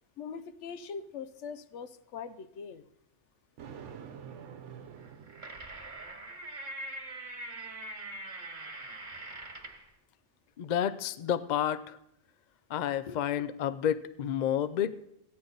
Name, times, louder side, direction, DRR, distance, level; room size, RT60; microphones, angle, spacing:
voice 1, 0.2-2.8, left 6 dB, 75° left, 11 dB, 0.9 m, -42 dB
Thunder, 3.6-6.1, right 7 dB, 75° right, 1.1 m, -47 dB
sound 1, 5.0-9.9, right 2 dB, 40° right, 1.6 m, -42 dB
voice 2, 10.6-12.0 12.7-15.0, left 9 dB, 55° left, 14 dB, 0.5 m, -30 dB
15.0 x 9.6 x 3.9 m, 0.79 s
omnidirectional pair, 1.2 m